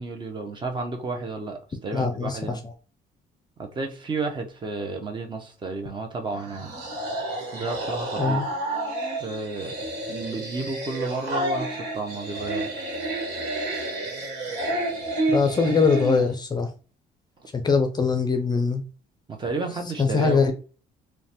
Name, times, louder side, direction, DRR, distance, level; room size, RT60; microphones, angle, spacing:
voice 1, 0.0-2.6 3.6-6.7 7.5-8.4 9.2-9.8 10.1-12.9 19.3-20.5, right 3 dB, 30° right, 0.6 m, -32 dB
voice 2, 1.9-2.4 8.2-8.5 15.3-16.7 17.5-18.8 20.0-20.5, left 4 dB, 25° left, 0.4 m, -22 dB
sound 1, 6.3-16.3, right 1 dB, 90° right, 1.1 m, -30 dB
3.1 x 2.1 x 2.8 m
cardioid pair, 110°, 17 cm